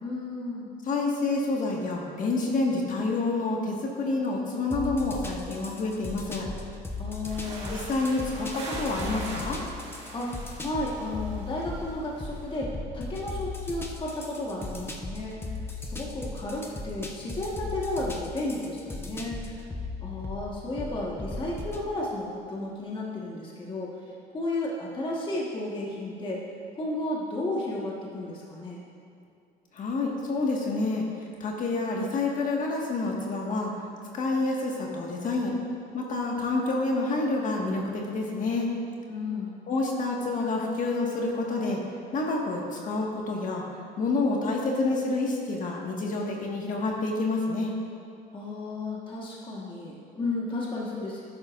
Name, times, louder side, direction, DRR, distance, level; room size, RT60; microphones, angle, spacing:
voice 1, 0.0-0.7 7.0-7.8 10.1-15.4 15.8-19.6 20.0-23.9 24.3-26.4 26.7-28.8 39.1-39.6 48.3-51.2, left 2 dB, 30° left, -4 dB, 1.5 m, -33 dB
voice 2, 0.9-6.5 7.7-9.6 29.7-31.1 31.4-33.7 34.1-35.5 35.9-38.7 39.7-41.8 42.1-43.6 44.0-47.8, left 3 dB, 50° left, -1 dB, 1.8 m, -28 dB
sound 1, 4.7-21.9, left 3 dB, 15° left, 0.9 m, -38 dB
sound 2, 7.2-12.4, right 2 dB, 40° right, 2.2 m, -42 dB
12.5 x 10.5 x 2.6 m, 2.6 s
cardioid pair, 110°, 17 cm